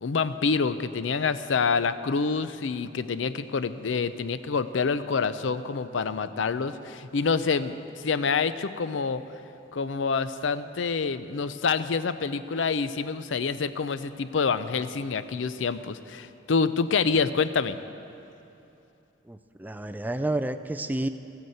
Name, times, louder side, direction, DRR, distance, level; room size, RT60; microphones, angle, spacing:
voice 1, 0.0-9.2 9.7-17.8, left 5 dB, 85° left, 13 dB, 0.5 m, -27 dB
voice 2, 19.3-21.1, right 1 dB, 10° right, 10 dB, 0.4 m, -30 dB
14.0 x 9.5 x 7.8 m, 2.8 s
head